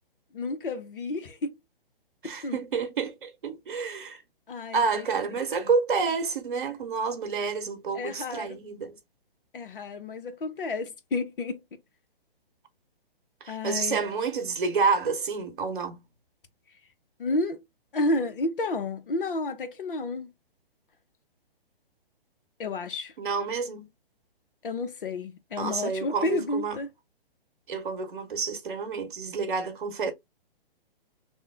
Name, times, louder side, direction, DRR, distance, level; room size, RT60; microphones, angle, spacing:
voice 1, 0.3-1.5 2.2-2.6 4.5-5.1 7.9-8.6 9.5-11.6 13.5-14.0 17.2-17.6 17.9-20.3 22.6-23.1 24.6-26.9, left 2 dB, 60° left, 0.9 m, -31 dB
voice 2, 2.2-4.2 4.7-9.0 13.4-16.0 23.2-23.9 25.6-26.8 27.7-30.1, right 5 dB, 55° right, 1.0 m, -29 dB
3.0 x 2.2 x 3.4 m
figure-of-eight pair, 130°, 30 cm